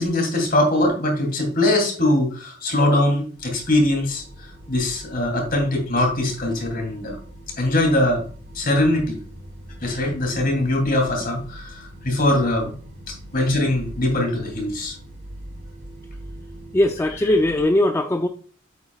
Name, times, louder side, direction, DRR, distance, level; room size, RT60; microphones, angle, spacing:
voice 1, 0.0-7.2 7.6-8.2 8.5-9.2 9.8-12.7 13.3-14.9, left 1 dB, 45° left, 3.1 m, -21 dB
sound 1, 3.3-17.6, equal, 45° right, 3.8 m, -41 dB
voice 2, 16.7-18.3, left 1 dB, 15° left, 0.4 m, -19 dB
8.7 x 8.1 x 2.4 m
head